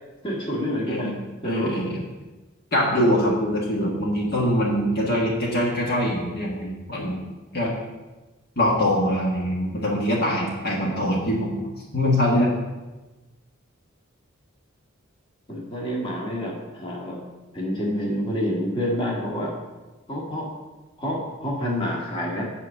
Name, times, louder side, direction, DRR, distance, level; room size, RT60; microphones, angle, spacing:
voice 1, 0.2-1.1 1.4-1.7 3.3-3.4 15.5-17.2 17.5-19.5 20.1-20.5 21.0-22.4, equal, 25° left, -3 dB, 1.7 m, -28 dB
voice 2, 1.4-2.0 2.7-7.2 7.5-7.7 8.6-11.7 11.9-12.5, equal, 50° left, -3 dB, 1.6 m, -23 dB
8.0 x 5.1 x 7.2 m, 1.2 s
head